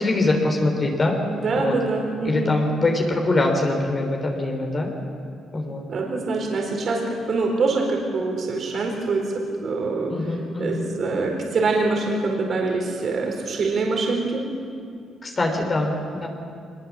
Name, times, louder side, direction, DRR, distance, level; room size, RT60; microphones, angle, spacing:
voice 1, 0.0-1.2 1.5-1.8 2.2-4.9 5.5-5.8 10.1-10.8 15.2-16.3, left 2 dB, 35° left, 1 dB, 3.6 m, -23 dB
voice 2, 1.3-2.6 5.9-14.4, right 3 dB, 55° right, 1 dB, 4.3 m, -25 dB
23.5 x 21.0 x 7.4 m, 2.4 s
cardioid pair, 90°, 0 cm